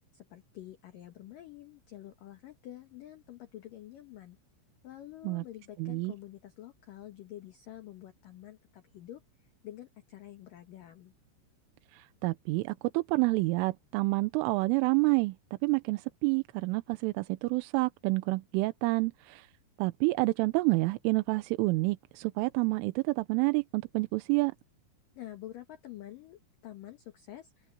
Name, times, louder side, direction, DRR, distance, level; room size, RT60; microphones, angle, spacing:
voice 1, 0.1-4.4 4.8-9.2 9.6-11.1 25.2-27.7, left 13 dB, 65° left, 2.2 m, -48 dB
voice 2, 5.8-6.1 11.9-15.4 15.6-19.5 19.8-24.5, right 24 dB, 90° right, 3.3 m, -28 dB
omnidirectional pair, 5.6 m